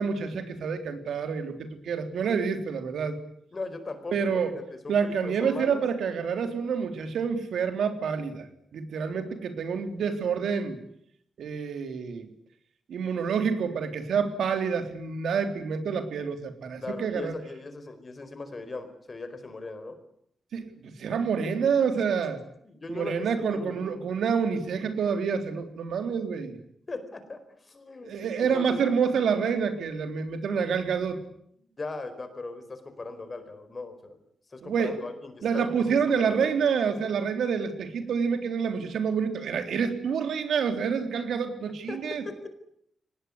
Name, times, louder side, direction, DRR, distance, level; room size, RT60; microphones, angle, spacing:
voice 1, 0.0-3.2 4.1-4.5 4.9-8.5 8.7-10.8 11.4-12.3 12.9-17.3 20.5-22.4 22.9-26.6 28.0-31.2 34.6-35.0 35.4-42.2, right 6 dB, 80° right, 7 dB, 3.6 m, -28 dB
voice 2, 3.5-5.8 16.8-20.0 22.6-23.9 26.9-28.8 31.6-34.2 34.5-36.5 41.9-42.0 42.2-42.5, left 3 dB, 30° left, 10 dB, 4.6 m, -39 dB
24.0 x 19.5 x 9.8 m, 0.70 s
wide cardioid pair, 115°, 0 cm